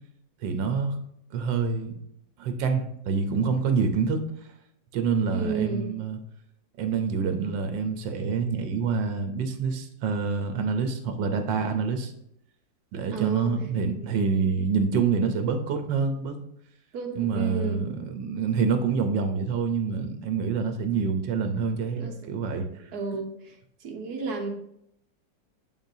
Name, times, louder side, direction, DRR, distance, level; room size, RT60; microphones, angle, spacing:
voice 1, 0.4-0.9 1.3-1.9 2.4-4.2 4.9-6.2 6.8-12.1 12.9-16.4 17.2-22.7, right 5 dB, 80° right, 7 dB, 1.5 m, -26 dB
voice 2, 5.3-5.9 13.1-13.5 13.9-14.1 16.9-17.8 22.0-22.3 22.9-23.5 23.8-24.5, right 5 dB, 60° right, 3 dB, 1.5 m, -32 dB
7.2 x 5.7 x 2.7 m, 0.75 s
omnidirectional pair, 2.0 m